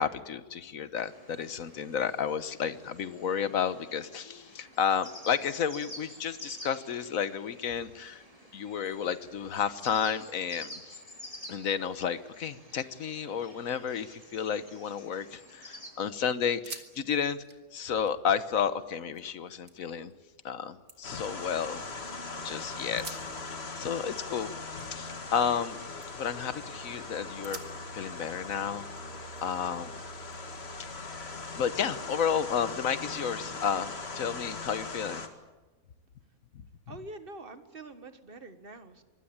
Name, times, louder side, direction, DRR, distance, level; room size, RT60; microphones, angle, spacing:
voice 1, 0.0-8.2 8.5-11.0 11.5-17.4 17.7-20.1 20.4-21.9 22.4-25.8 26.2-27.6 27.9-28.8 29.4-30.0 30.8-35.2, left 7 dB, 65° left, 13 dB, 1.5 m, -32 dB
sound 1, 1.0-15.9, left 1 dB, 25° right, 6.6 m, -49 dB
sound 2, 16.6-16.9 17.2-19.3 19.7-20.2 20.6-22.1 22.8-25.7 26.0-26.4 26.8-27.0 27.4-29.7 30.3-31.5, right 5 dB, 75° right, 2.5 m, -50 dB
sound 3, 21.0-35.3, left 3 dB, 45° left, 2.2 m, -40 dB
voice 2, 36.9-39.0, right 2 dB, 40° right, 10 dB, 1.7 m, -45 dB
24.5 x 20.5 x 8.8 m, 1.2 s
omnidirectional pair, 1.6 m